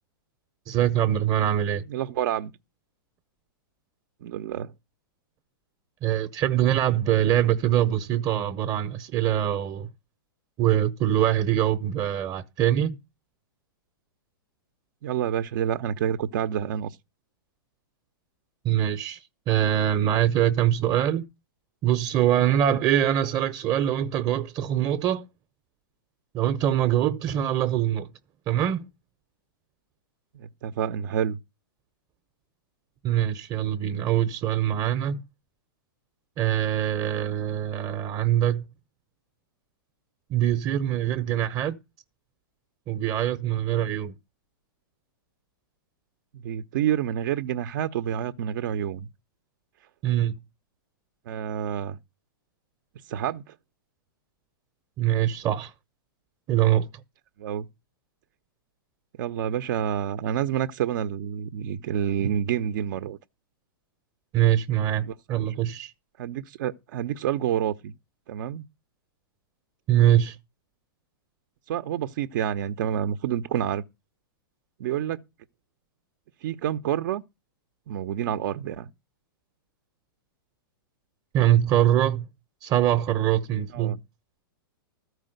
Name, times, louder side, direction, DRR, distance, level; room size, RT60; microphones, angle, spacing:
voice 1, 0.7-1.8 6.0-9.9 10.6-13.0 18.6-21.3 21.8-25.3 26.3-28.1 28.5-28.9 33.0-35.2 36.4-38.7 40.3-41.8 42.9-44.1 50.0-50.3 55.0-55.7 56.5-56.9 64.3-65.9 69.9-70.4 81.3-82.3 82.6-84.0, right 11 dB, 30° right, 1.0 m, -23 dB
voice 2, 1.9-2.5 4.2-4.7 15.0-17.0 30.3-31.4 46.3-49.1 51.3-52.0 53.1-53.5 57.4-57.7 59.2-63.2 65.3-65.5 66.2-67.9 68.3-68.6 71.7-73.8 74.8-75.2 76.4-77.2 77.9-78.9 83.7-84.0, right 10 dB, 55° right, 0.9 m, -28 dB
14.0 x 4.9 x 7.9 m
hypercardioid pair, 130°, 12 cm